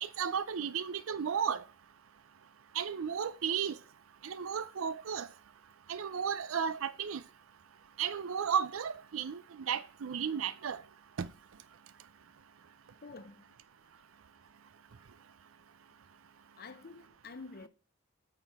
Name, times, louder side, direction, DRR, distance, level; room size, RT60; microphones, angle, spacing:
voice 1, 0.0-1.6 2.7-3.7 4.2-5.3 5.9-7.2 8.0-10.8 11.2-11.3, right 7 dB, 85° right, 0.5 m, -34 dB
voice 2, 13.0-13.5 16.6-17.7, left 4 dB, 50° left, 0.7 m, -48 dB
8.7 x 5.9 x 3.5 m
head